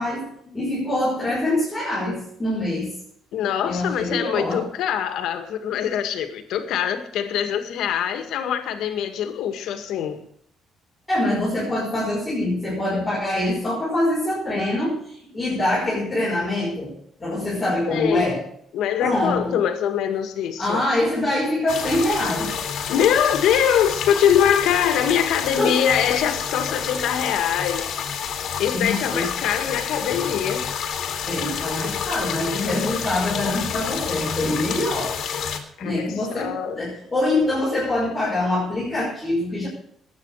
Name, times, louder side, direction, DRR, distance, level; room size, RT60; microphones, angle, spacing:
voice 1, 0.0-2.9 3.6-4.7 11.1-18.4 19.0-19.6 20.6-22.6 25.6-25.8 28.7-29.3 31.2-35.2 35.8-39.7, left 1 dB, 5° left, -8 dB, 5.7 m, -24 dB
voice 2, 3.3-10.2 17.9-18.4 18.7-20.8 22.9-27.9 28.6-30.7 35.8-36.8, left 9 dB, 75° left, 7 dB, 1.9 m, -23 dB
sound 1, 21.7-35.6, left 7 dB, 55° left, 2.3 m, -29 dB
20.5 x 9.0 x 4.8 m, 0.68 s
cardioid pair, 170°, 0 cm